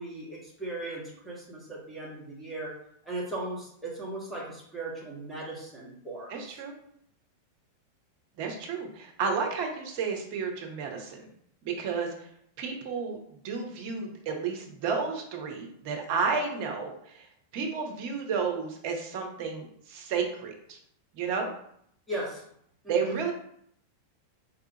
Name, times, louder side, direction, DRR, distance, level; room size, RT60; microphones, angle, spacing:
voice 1, 0.0-2.7 3.0-6.6 22.1-22.4 22.8-23.2, right 2 dB, 5° right, -5 dB, 1.1 m, -37 dB
voice 2, 6.3-6.7 8.4-11.3 11.6-12.3 12.6-13.2 13.4-17.3 17.5-20.8 21.1-21.5 22.9-23.3, right 5 dB, 45° right, 2 dB, 0.7 m, -32 dB
4.1 x 2.4 x 2.8 m, 0.68 s
figure-of-eight pair, 90°, 0 cm